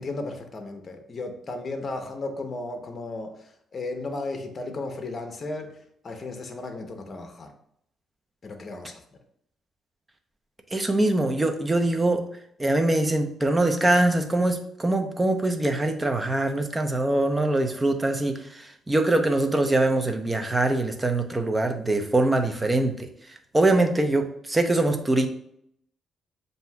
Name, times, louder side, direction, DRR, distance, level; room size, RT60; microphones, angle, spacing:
voice 1, 0.0-3.4 3.7-5.7 6.0-7.5 8.4-9.0, left 2 dB, 40° left, 5 dB, 0.7 m, -34 dB
voice 2, 10.7-12.2 12.6-23.1 23.5-25.3, right 2 dB, 20° right, 6 dB, 0.6 m, -23 dB
7.3 x 2.7 x 2.2 m, 0.70 s
cardioid pair, 90°, 0 cm